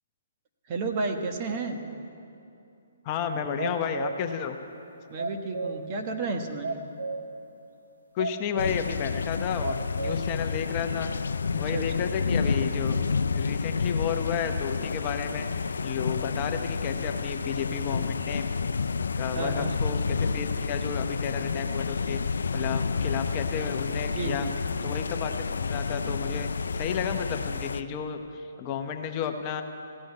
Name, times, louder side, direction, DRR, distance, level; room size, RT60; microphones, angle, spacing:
voice 1, 0.7-1.8 5.1-6.7 11.6-12.1 19.3-19.7 24.1-24.5, right 3 dB, 35° right, 5 dB, 1.2 m, -32 dB
voice 2, 3.0-4.6 8.1-11.1 11.6-13.0 13.3-15.5 15.8-18.5 19.2-22.2 22.5-24.5 24.8-29.6, left 7 dB, 30° left, 6 dB, 0.8 m, -32 dB
sound 1, 3.6-4.3 5.2-5.9 6.6-7.3 7.8-7.9 8.2-8.9 9.3-10.2, right 3 dB, 85° right, 1.5 m, -33 dB
sound 2, 8.6-27.8, left 5 dB, 80° left, 0.4 m, -30 dB
16.0 x 6.2 x 9.6 m, 2.8 s
hypercardioid pair, 145°, 0 cm